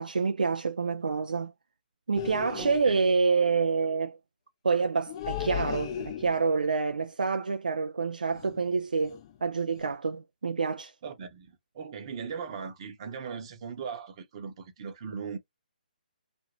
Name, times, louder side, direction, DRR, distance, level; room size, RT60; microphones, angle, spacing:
voice 1, 0.0-1.5 2.1-4.2 4.6-10.9, right 4 dB, 65° right, 0.4 m, -27 dB
sound 1, 2.2-3.0 5.1-6.6 8.3-8.7 9.0-9.4 9.7-9.9, left 10 dB, 30° left, 0.5 m, -37 dB
voice 2, 2.6-3.0 11.0-15.4, right 6 dB, 35° right, 0.9 m, -39 dB
2.8 x 2.5 x 2.9 m
figure-of-eight pair, 135°, 5 cm